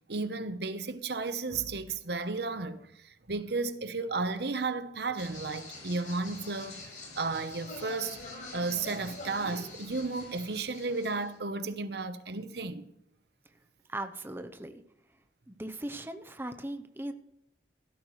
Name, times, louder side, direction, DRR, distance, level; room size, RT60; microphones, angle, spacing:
voice 1, 0.1-2.8 3.3-6.7 7.2-8.2 8.5-12.8, right 3 dB, 65° right, 1.0 m, -33 dB
sound 1, 5.2-11.4, left 2 dB, 45° left, 6.3 m, -45 dB
voice 2, 13.9-14.8 15.5-17.1, right 1 dB, 10° right, 0.7 m, -38 dB
16.0 x 13.0 x 3.2 m
head